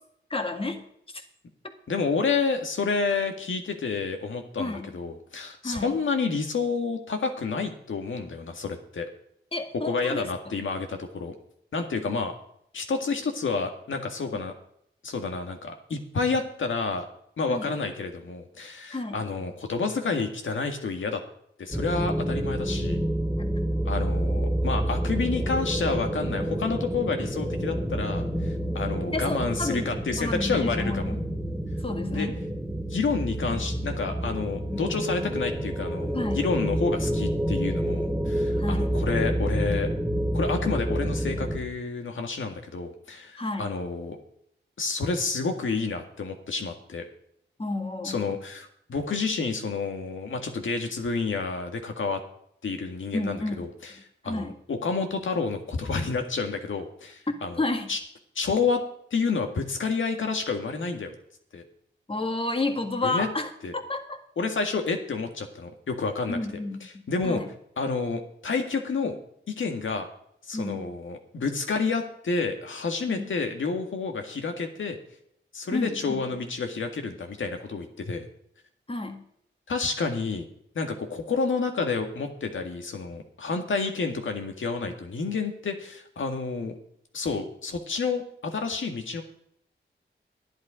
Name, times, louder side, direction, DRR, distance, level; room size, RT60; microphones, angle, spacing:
voice 1, 0.3-0.8 1.1-1.2 4.6-4.9 5.6-5.9 9.5-10.5 14.3-14.4 17.5-17.7 18.9-19.2 29.1-31.3 31.8-32.3 34.7-35.3 36.1-36.5 38.6-39.0 43.4-43.7 47.6-48.3 53.1-53.6 54.2-54.5 57.6-57.9 62.1-64.2 66.3-67.5 70.5-70.9 73.1-73.3 75.7-76.2 78.9-79.2, left 2 dB, 30° left, 5 dB, 1.8 m, -31 dB
voice 2, 1.9-9.1 9.8-11.3 11.7-12.3 12.7-14.5 15.0-17.1 17.4-21.2 21.6-23.0 23.9-31.2 32.1-32.3 32.9-39.9 40.3-44.2 44.8-47.0 48.0-52.2 52.6-54.0 54.2-57.6 57.9-58.0 58.4-58.8 59.1-61.1 61.5-61.6 63.0-63.3 63.6-63.7 64.4-66.4 66.8-67.4 67.8-69.2 69.5-70.1 70.5-75.0 75.5-78.3 79.7-80.4 80.8-86.8 87.1-89.2, left 4 dB, 80° left, 5 dB, 1.9 m, -29 dB
sound 1, 21.7-41.6, right 1 dB, ahead, 2.2 m, -28 dB
12.0 x 11.0 x 5.1 m, 0.70 s
wide cardioid pair, 90°, 20 cm